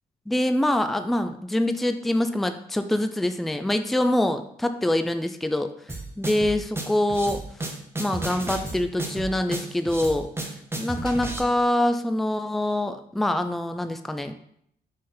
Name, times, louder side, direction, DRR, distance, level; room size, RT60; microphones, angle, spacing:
voice 1, 0.3-5.7 6.2-7.4 8.0-10.5 10.8-14.3, left 1 dB, ahead, 8 dB, 0.3 m, -25 dB
sound 1, 5.9-11.4, right 2 dB, 15° right, 0.8 m, -32 dB
3.6 x 3.3 x 4.3 m, 0.70 s
cardioid pair, 75°, 16 cm